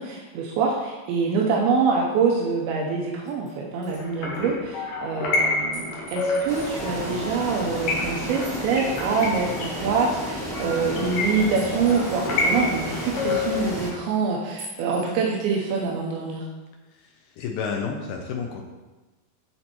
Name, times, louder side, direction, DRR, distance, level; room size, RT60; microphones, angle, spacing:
voice 1, 0.0-16.5, right 5 dB, 85° right, -2 dB, 2.6 m, -25 dB
sound 1, 2.4-2.5 3.1-3.5 3.8-4.0 4.3-4.4 5.7-7.2 8.4-8.6 8.9-9.9 11.6-12.7 14.6-15.2, right 1 dB, 55° right, 3.9 m, -45 dB
sound 2, 4.0-13.7, left 3 dB, 65° left, 2.5 m, -29 dB
sound 3, 6.5-13.9, equal, 5° left, 0.4 m, -32 dB
voice 2, 17.0-18.6, left 5 dB, 80° left, 1 dB, 1.9 m, -31 dB
13.0 x 4.4 x 2.9 m, 1.2 s
omnidirectional pair, 4.5 m